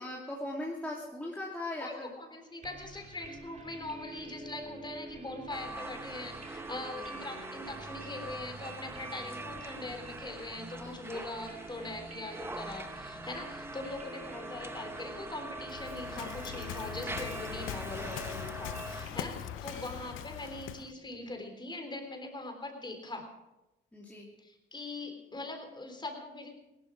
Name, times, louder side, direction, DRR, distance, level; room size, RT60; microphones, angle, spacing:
voice 1, 0.0-2.1 10.8-11.2 19.1-19.3 23.9-24.3, left 1 dB, 5° left, -4 dB, 2.8 m, -39 dB
voice 2, 1.8-23.3 24.4-26.6, left 2 dB, 25° left, 4 dB, 3.7 m, -42 dB
sound 1, 2.6-21.3, right 2 dB, 35° right, 2.7 m, -48 dB
sound 2, 5.5-19.1, right 2 dB, 10° right, 0.9 m, -43 dB
Waves surf, 15.7-20.9, left 15 dB, 85° left, 0.4 m, -42 dB
17.0 x 12.5 x 4.8 m, 0.96 s
cardioid pair, 90°, 20 cm